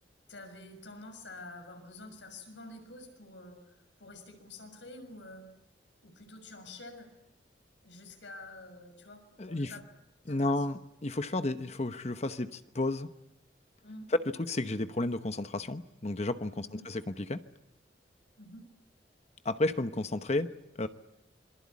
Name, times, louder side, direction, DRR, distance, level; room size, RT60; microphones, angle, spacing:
voice 1, 0.3-5.5 6.0-7.1 7.8-9.8 10.3-10.6 13.8-14.1 16.6-16.9 18.4-18.7, left 2 dB, 85° left, 5 dB, 6.3 m, -48 dB
voice 2, 9.4-9.7 10.3-13.1 14.5-17.4 19.4-20.5 20.8-20.9, left 2 dB, 35° left, 10 dB, 0.9 m, -32 dB
26.5 x 23.0 x 8.5 m, 0.86 s
head